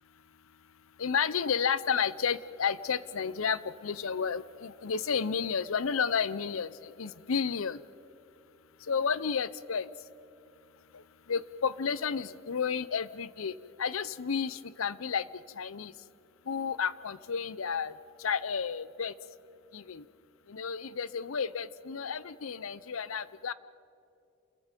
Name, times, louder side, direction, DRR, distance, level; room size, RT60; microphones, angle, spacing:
voice 1, 1.0-7.8 8.9-9.9 11.3-13.5 13.8-15.2 15.6-15.9 16.5-17.9 18.2-19.1 19.7-20.0 20.5-23.5, left 6 dB, 75° left, 17 dB, 0.7 m, -31 dB
28.5 x 22.0 x 5.2 m, 2.7 s
head